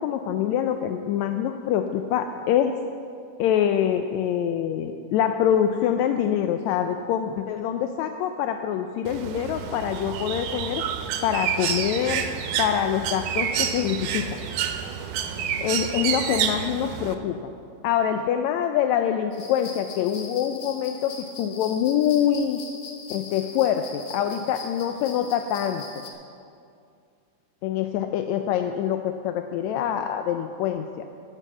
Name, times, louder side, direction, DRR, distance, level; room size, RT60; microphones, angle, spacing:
voice 1, 0.0-2.7 3.4-10.8 11.2-12.2 12.6-14.3 15.6-17.4 17.8-22.6 23.1-25.8 27.6-31.1, left 9 dB, 80° left, 7 dB, 1.6 m, -25 dB
Bird, 9.1-17.2, right 8 dB, 80° right, 2.2 m, -29 dB
sound 1, 19.3-26.1, left 4 dB, 60° left, 1.5 m, -41 dB
11.0 x 9.6 x 7.3 m, 2.4 s
omnidirectional pair, 3.7 m